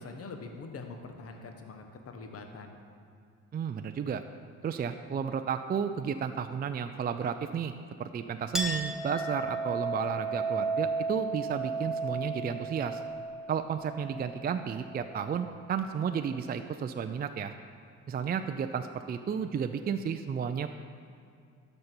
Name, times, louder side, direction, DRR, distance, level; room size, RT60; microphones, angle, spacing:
voice 1, 0.0-2.8, left 3 dB, 50° left, 4 dB, 1.1 m, -44 dB
voice 2, 3.5-4.2 4.6-7.7 8.0-13.0 13.5-17.5 18.1-20.7, right 7 dB, 30° right, 8 dB, 0.4 m, -32 dB
Chink clink, 8.5-15.6, right 3 dB, ahead, 1.0 m, -34 dB
13.0 x 5.4 x 4.5 m, 2.3 s
cardioid pair, 90°, 30 cm